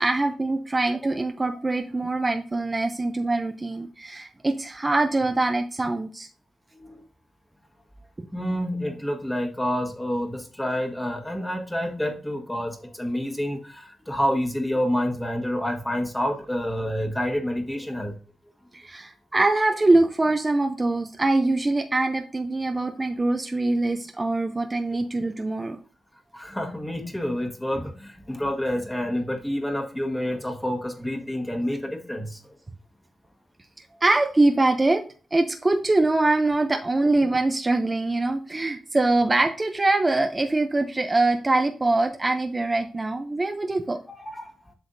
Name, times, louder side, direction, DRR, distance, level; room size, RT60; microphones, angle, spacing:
voice 1, 0.0-6.3 8.2-8.3 18.7-25.8 34.0-35.0 35.3-44.0, right 2 dB, 20° right, 5 dB, 0.6 m, -23 dB
voice 2, 6.7-7.0 8.3-18.1 26.3-32.4 44.2-44.5, equal, 10° left, 2 dB, 1.5 m, -28 dB
7.9 x 5.6 x 2.7 m, 0.38 s
cardioid pair, 95°, 0 cm